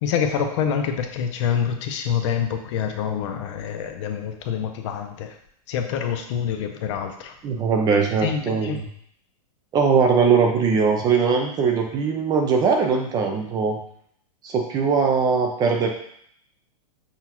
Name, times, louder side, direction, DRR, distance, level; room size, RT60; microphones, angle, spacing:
voice 1, 0.0-5.3 5.7-7.3 8.2-8.8, left 7 dB, 50° left, 6 dB, 0.5 m, -26 dB
voice 2, 7.4-8.9 9.7-13.8 14.4-15.9, right 5 dB, 20° right, 3 dB, 0.4 m, -20 dB
5.6 x 2.3 x 2.9 m, 0.67 s
hypercardioid pair, 145°, 20 cm